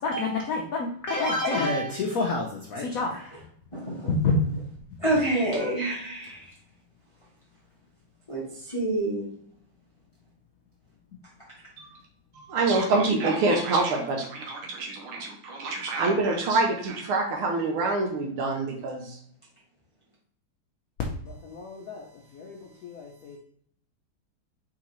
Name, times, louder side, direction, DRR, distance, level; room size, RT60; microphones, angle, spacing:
voice 1, 0.0-3.4 4.1-4.4 21.3-22.1 22.3-23.4, left 2 dB, 85° left, 0 dB, 0.7 m, -28 dB
voice 2, 3.7-4.1 5.0-6.5 8.3-9.3, right 1 dB, 35° left, -5 dB, 0.5 m, -27 dB
voice 3, 12.3-19.2, right 3 dB, 80° right, 2 dB, 1.6 m, -26 dB
4.7 x 3.6 x 3.0 m, 0.64 s
omnidirectional pair, 2.4 m